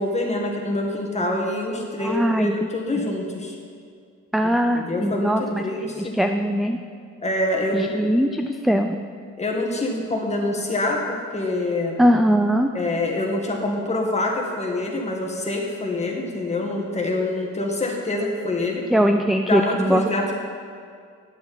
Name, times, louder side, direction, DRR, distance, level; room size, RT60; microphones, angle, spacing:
voice 1, 0.0-3.6 4.7-6.1 7.2-8.1 9.4-12.0 12.7-18.8 19.4-20.3, left 2 dB, 20° left, 0 dB, 1.8 m, -26 dB
voice 2, 2.0-2.6 4.3-5.6 6.0-6.8 7.7-9.0 12.0-12.7 18.9-20.1, equal, ahead, 5 dB, 0.3 m, -20 dB
10.5 x 7.7 x 4.2 m, 2.2 s
cardioid pair, 90°, 30 cm